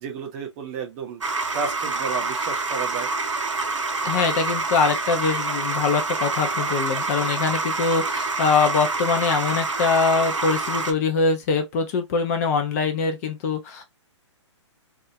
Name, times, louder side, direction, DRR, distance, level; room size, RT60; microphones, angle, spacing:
voice 1, 0.0-1.2 1.5-3.1, right 6 dB, 30° right, 0.6 m, -32 dB
sound 1, 1.2-10.9, right 3 dB, 90° right, 0.6 m, -26 dB
voice 2, 4.0-13.8, left 5 dB, 30° left, 0.5 m, -23 dB
2.4 x 2.0 x 2.7 m
hypercardioid pair, 135°, 16 cm